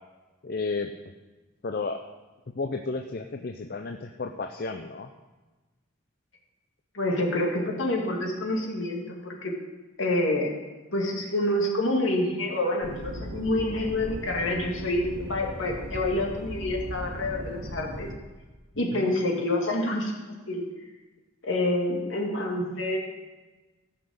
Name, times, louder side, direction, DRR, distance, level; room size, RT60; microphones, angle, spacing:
voice 1, 0.4-0.9 1.6-2.0 2.5-5.1 18.9-19.1, left 3 dB, 45° left, 5 dB, 0.5 m, -32 dB
voice 2, 6.9-9.5 10.0-10.5 10.9-18.1 18.8-20.6 21.4-23.0, left 1 dB, 65° left, 0 dB, 2.1 m, -27 dB
sound 1, 12.8-18.2, equal, 85° right, 1.7 m, -38 dB
15.0 x 5.9 x 6.4 m, 1.2 s
head